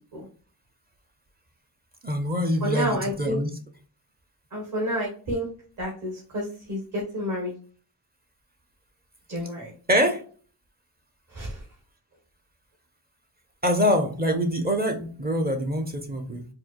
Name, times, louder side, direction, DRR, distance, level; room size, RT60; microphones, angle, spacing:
voice 1, 2.0-3.5 9.9-10.2 13.6-16.5, equal, 20° right, 6 dB, 0.6 m, -24 dB
voice 2, 2.6-3.4 4.5-5.5 5.8-7.5 9.3-9.7 11.3-11.6, equal, 45° right, -2 dB, 1.4 m, -29 dB
4.4 x 2.1 x 2.5 m, 0.42 s
cardioid pair, 70°, 44 cm